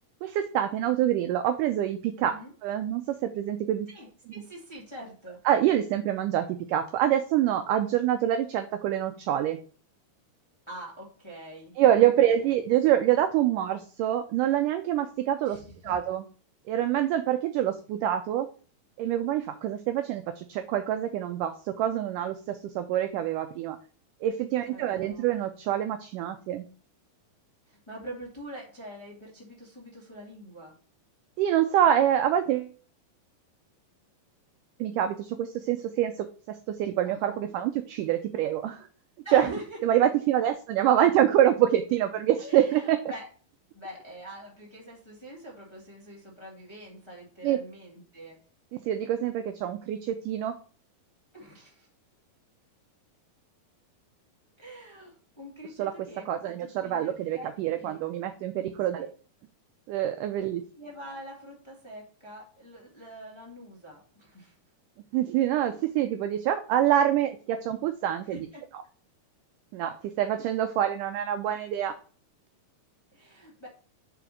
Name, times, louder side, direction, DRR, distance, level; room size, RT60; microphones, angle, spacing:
voice 1, 0.2-2.4 2.6-3.9 5.5-9.6 11.8-16.2 16.7-18.5 19.0-23.8 24.2-26.7 31.4-32.7 34.8-38.9 39.3-39.5 39.8-43.0 47.4-47.6 48.7-50.5 55.8-55.9 56.3-59.1 59.9-60.6 65.1-68.4 69.7-72.0, right 11 dB, 90° right, 8 dB, 1.8 m, -26 dB
voice 2, 3.9-5.4 10.7-11.7 15.4-16.0 24.7-25.4 27.7-30.7 37.0-37.4 39.2-39.8 42.4-43.3 43.7-48.4 51.3-51.9 54.6-58.0 58.9-59.1 60.8-64.6 68.3-68.6 73.1-73.7, equal, 35° left, -3 dB, 0.4 m, -44 dB
5.0 x 4.7 x 6.2 m, 0.40 s
omnidirectional pair, 4.3 m